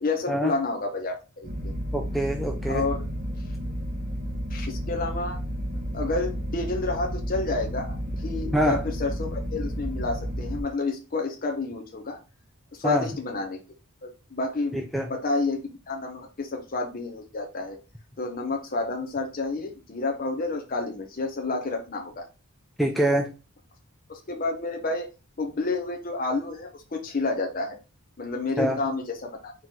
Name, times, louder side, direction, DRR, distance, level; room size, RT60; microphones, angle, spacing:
voice 1, 0.0-1.7 2.7-3.0 4.5-5.4 5.9-12.2 12.7-13.6 14.0-14.8 15.1-17.8 18.2-22.3 24.1-25.1 25.4-27.8 28.2-29.5, left 3 dB, 40° left, 0.6 m, -30 dB
sound 1, 1.4-10.6, equal, 30° right, 1.0 m, -32 dB
voice 2, 1.9-2.9 8.5-8.8 12.8-13.1 14.7-15.1 22.8-23.3 28.6-28.8, right 1 dB, ahead, 0.3 m, -25 dB
4.4 x 2.9 x 3.7 m
head